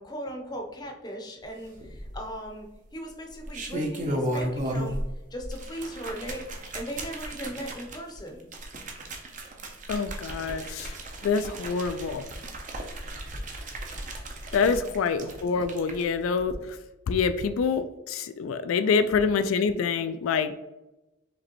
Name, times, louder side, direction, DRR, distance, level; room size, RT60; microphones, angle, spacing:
voice 1, 0.0-5.0 5.3-6.4 6.7-8.5 14.6-15.0 18.9-19.0, equal, 20° left, 2 dB, 0.6 m, -38 dB
sound 1, 1.8-2.5 3.3-5.1 5.4-16.0 16.4-16.5, right 1 dB, 40° right, 0.6 m, -35 dB
voice 2, 9.9-10.9 11.2-12.2 14.5-16.8 17.1-20.5, left 5 dB, 85° left, 10 dB, 0.3 m, -26 dB
5.0 x 3.1 x 3.0 m, 1.0 s
head